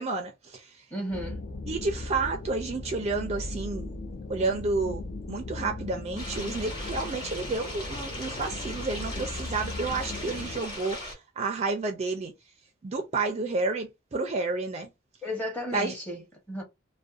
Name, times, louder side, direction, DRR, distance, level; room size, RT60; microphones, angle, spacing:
voice 1, 0.0-0.8 1.7-3.9 4.3-5.0 5.3-12.3 12.8-14.9 15.7-15.9, right 3 dB, 35° right, 0.4 m, -30 dB
voice 2, 0.9-1.5 15.2-16.6, equal, 10° left, 0.9 m, -34 dB
sound 1, 1.1-10.6, left 2 dB, 45° left, 0.4 m, -38 dB
sound 2, 6.2-11.1, left 1 dB, 25° left, 1.2 m, -39 dB
2.5 x 2.1 x 2.3 m
head